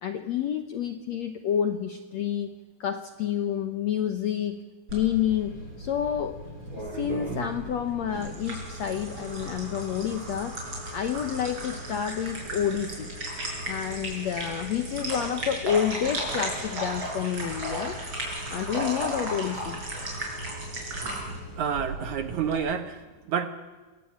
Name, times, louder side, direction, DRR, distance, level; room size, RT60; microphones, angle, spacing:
voice 1, 0.0-2.5 2.8-4.6 4.9-6.4 6.8-10.5 10.9-13.1 13.6-18.0 18.5-19.8, left 9 dB, 70° left, 8 dB, 1.7 m, -29 dB
sound 1, 4.9-22.5, right 1 dB, 30° right, 7.5 m, -35 dB
voice 2, 21.6-23.5, right 7 dB, 65° right, 9 dB, 2.0 m, -29 dB
27.5 x 20.5 x 8.7 m, 1.3 s
omnidirectional pair, 4.4 m